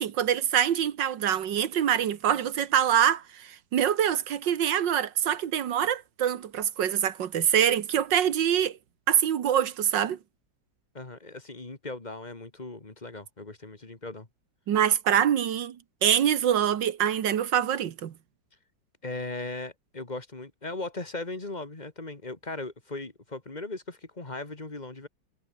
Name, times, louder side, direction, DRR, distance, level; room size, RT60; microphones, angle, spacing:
voice 1, 0.0-8.8 9.1-10.2 14.7-18.1, right 9 dB, 75° right, 1.9 m, -25 dB
voice 2, 10.9-14.3 19.0-25.1, left 2 dB, 20° left, 2.3 m, -38 dB
omnidirectional pair, 2.0 m